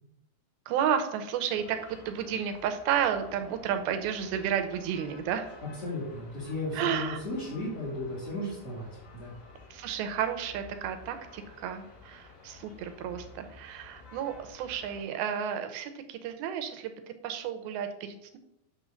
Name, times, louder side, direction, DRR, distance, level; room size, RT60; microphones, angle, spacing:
voice 1, 0.7-5.5 6.7-7.2 9.7-16.9 17.2-18.4, right 8 dB, 85° right, 8 dB, 2.6 m, -32 dB
sound 1, 1.5-15.0, left 4 dB, 75° left, 5.4 m, -52 dB
voice 2, 5.8-9.3, left 1 dB, 45° left, -7 dB, 3.0 m, -35 dB
9.2 x 3.5 x 6.3 m, 0.84 s
omnidirectional pair, 4.3 m